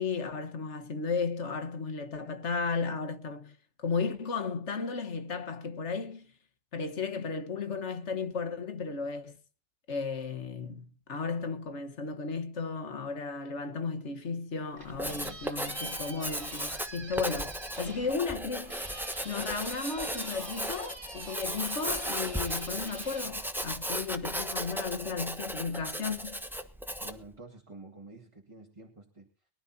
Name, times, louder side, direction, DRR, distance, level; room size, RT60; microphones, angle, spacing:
voice 1, 0.0-6.3 6.7-9.4 9.9-18.8 19.2-26.4, left 4 dB, 80° left, 1.7 m, -34 dB
sound 1, 14.5-24.2, right 2 dB, 45° right, 2.2 m, -46 dB
Writing, 14.8-27.3, equal, ahead, 1.1 m, -36 dB
voice 2, 15.0-15.6 17.8-18.1 27.0-29.5, right 2 dB, 25° right, 1.8 m, -50 dB
23.0 x 12.5 x 2.8 m
omnidirectional pair, 1.2 m